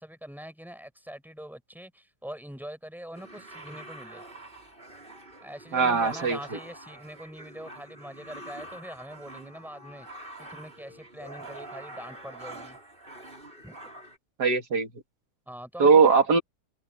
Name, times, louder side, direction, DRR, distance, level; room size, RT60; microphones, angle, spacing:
voice 1, 0.0-4.2 5.4-10.1 10.4-12.8 13.6-13.8 15.5-16.2, equal, ahead, 5.3 m, -43 dB
sound 1, 3.1-14.2, right 1 dB, 35° right, 5.1 m, -45 dB
voice 2, 5.7-6.6 14.4-14.9 15.8-16.4, right 5 dB, 85° right, 2.6 m, -20 dB
omnidirectional pair, 1.7 m